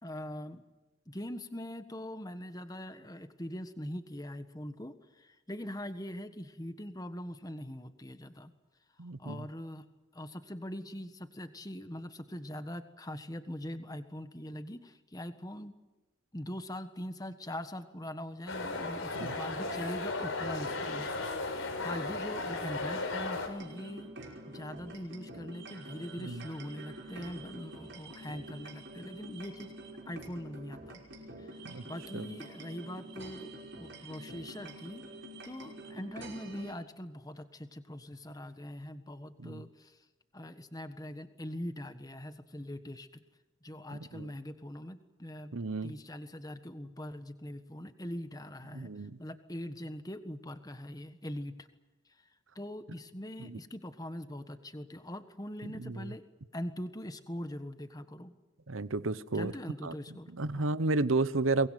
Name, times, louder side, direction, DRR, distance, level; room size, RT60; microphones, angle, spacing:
voice 1, 0.0-0.6 1.1-8.5 9.2-9.9 10.1-15.7 16.3-21.1 21.8-24.1 24.5-29.7 30.0-31.0 31.4-35.0 35.4-40.0 40.3-43.1 43.6-45.5 45.8-51.7 52.1-52.3 52.5-56.2 56.5-58.3 59.3-60.7, left 1 dB, 20° left, 9 dB, 1.4 m, -42 dB
voice 2, 9.0-9.4 19.1-19.3 26.2-26.4 31.6-31.8 32.1-32.2 39.4-39.6 43.9-44.3 45.5-45.9 48.7-49.2 53.4-53.6 55.8-56.0 58.7-59.5 59.8-59.9 60.4-61.7, right 3 dB, 80° right, 15 dB, 1.0 m, -32 dB
sound 1, 18.5-23.5, left 2 dB, 80° left, 4.8 m, -35 dB
sound 2, 23.5-36.7, right 1 dB, 60° right, 5.6 m, -47 dB
23.5 x 21.0 x 9.2 m, 1.1 s
head